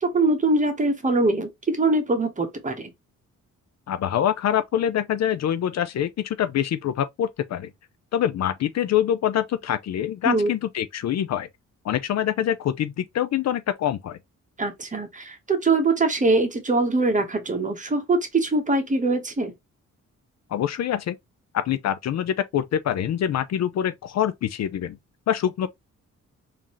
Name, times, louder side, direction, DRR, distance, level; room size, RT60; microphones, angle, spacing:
voice 1, 0.0-2.9 10.2-10.5 14.6-19.5, right 2 dB, 25° right, 1.1 m, -23 dB
voice 2, 3.9-7.7 8.1-11.5 11.8-14.2 20.5-21.2 21.5-25.0 25.3-25.7, left 10 dB, 60° left, 0.5 m, -25 dB
3.8 x 2.8 x 3.0 m
cardioid pair, 95°, 30 cm